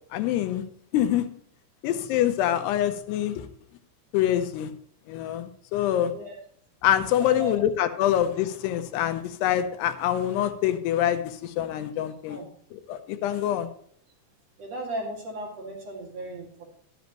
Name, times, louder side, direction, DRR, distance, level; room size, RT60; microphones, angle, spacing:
voice 1, 0.1-0.6 0.9-1.3 1.8-3.5 4.1-4.7 5.1-6.1 6.8-12.5 12.7-13.7, left 11 dB, 85° left, 9 dB, 2.8 m, -25 dB
voice 2, 7.2-7.5 12.3-12.5 14.6-16.7, right 1 dB, 45° right, -2 dB, 2.7 m, -36 dB
12.5 x 10.5 x 3.0 m, 0.63 s
omnidirectional pair, 4.8 m